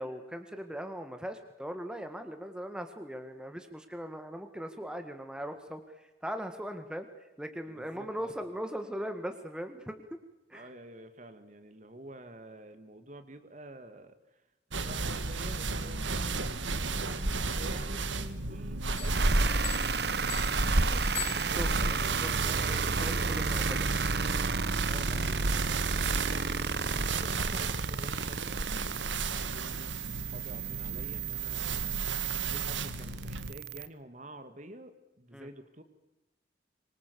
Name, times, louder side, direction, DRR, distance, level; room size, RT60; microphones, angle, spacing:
voice 1, 0.0-7.1 7.4-10.2 10.5-10.7 21.4-23.9 29.7-29.8 35.3-35.5, equal, 5° right, 7 dB, 1.8 m, -40 dB
voice 2, 7.7-8.4 10.5-14.4 14.7-23.4 24.9-32.0 32.5-35.8, right 1 dB, 40° right, 9 dB, 2.0 m, -49 dB
sound 1, 14.7-33.5, right 2 dB, 90° right, 1.7 m, -33 dB
sound 2, 19.0-22.0, left 14 dB, 85° left, 1.4 m, -43 dB
sound 3, 19.1-33.9, right 5 dB, 60° right, 1.0 m, -33 dB
25.5 x 24.0 x 7.0 m, 1.0 s
head